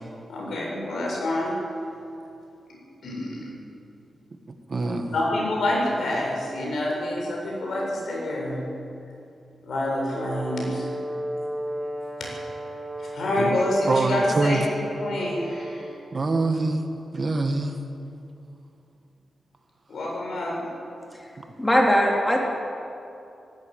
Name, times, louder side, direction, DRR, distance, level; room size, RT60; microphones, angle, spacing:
voice 1, 0.3-1.5 3.0-3.5 5.1-8.6 9.6-10.9 13.0-14.6 15.0-15.9 19.9-20.7, left 1 dB, 70° left, -2 dB, 7.3 m, -27 dB
voice 2, 4.7-5.1 13.4-13.5 13.8-14.6 16.1-16.8 17.1-17.7 21.4-21.5, right 3 dB, 40° right, 5 dB, 1.7 m, -24 dB
Brass instrument, 10.1-16.1, right 1 dB, 20° right, 2.0 m, -35 dB
voice 3, 21.6-22.4, equal, 10° left, -1 dB, 2.9 m, -20 dB
18.0 x 16.5 x 9.2 m, 2.6 s
wide cardioid pair, 120°, 0 cm